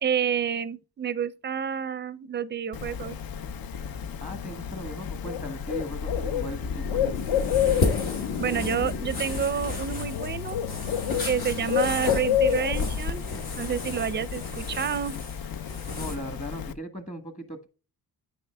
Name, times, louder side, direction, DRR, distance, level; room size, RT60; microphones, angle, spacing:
voice 1, 0.0-3.2 8.4-10.6 11.2-13.2 13.6-15.2, right 8 dB, 30° right, 0.5 m, -29 dB
Bird, 2.7-16.7, left 8 dB, 70° left, 0.6 m, -30 dB
sound 1, 4.0-10.0, left 5 dB, 50° left, 1.1 m, -37 dB
voice 2, 4.2-7.3 16.0-17.7, equal, 20° left, 1.2 m, -38 dB
sound 2, 7.1-16.1, left 2 dB, 90° left, 2.3 m, -34 dB
9.2 x 5.4 x 2.2 m
cardioid pair, 85°, 36 cm